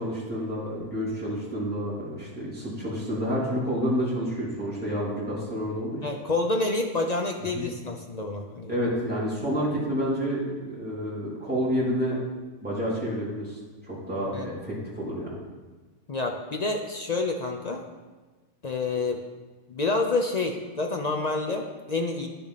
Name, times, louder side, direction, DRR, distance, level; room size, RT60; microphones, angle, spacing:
voice 1, 0.0-6.0 7.5-7.7 8.7-12.2 12.6-13.6 13.9-15.4, equal, 5° right, -9 dB, 3.3 m, -29 dB
voice 2, 6.0-8.7 14.3-14.5 16.1-17.8 18.6-19.2 19.7-22.3, left 3 dB, 50° left, 3 dB, 0.5 m, -28 dB
10.5 x 6.8 x 4.1 m, 1.3 s
omnidirectional pair, 1.6 m